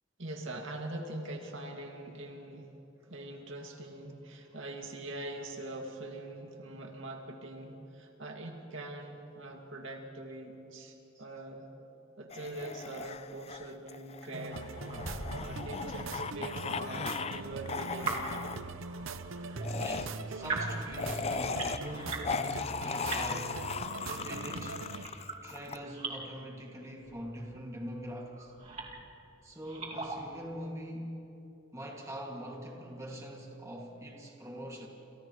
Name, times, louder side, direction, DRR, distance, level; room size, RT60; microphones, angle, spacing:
voice 1, 0.2-2.7 3.1-11.7 12.2-14.7 15.2-18.4, right 2 dB, 70° right, 1 dB, 2.1 m, -43 dB
voice 2, 3.1-3.4 4.4-4.7 11.1-11.2 19.8-23.6 24.1-24.9 25.4-28.6 29.4-31.4 31.7-34.9, equal, 15° right, -1 dB, 2.1 m, -43 dB
sound 1, 12.3-17.4 17.7-18.6 19.6-25.8, left 5 dB, 30° left, 0.5 m, -38 dB
sound 2, 14.3-25.1, right 3 dB, 85° right, 0.8 m, -41 dB
sound 3, 14.9-22.4 22.7-26.3 27.0-27.6 28.3-29.1 29.5-30.4, right 3 dB, 35° right, 2.3 m, -42 dB
29.0 x 28.5 x 3.1 m, 2.9 s
head